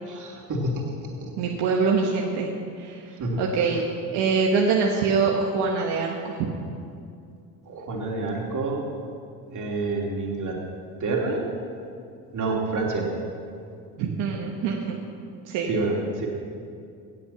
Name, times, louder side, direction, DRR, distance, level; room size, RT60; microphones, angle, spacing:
voice 1, 0.1-1.5 3.2-3.4 7.7-8.8 9.5-10.6 11.0-11.4 12.3-13.1 15.7-16.3, right 2 dB, 50° right, -1 dB, 3.1 m, -28 dB
voice 2, 1.4-2.5 2.8-3.1 3.4-3.8 4.1-6.5 14.0-15.0 15.4-15.7, right 5 dB, 80° right, -1 dB, 1.4 m, -24 dB
17.5 x 7.9 x 5.9 m, 2.4 s
supercardioid pair, 85°, 40 cm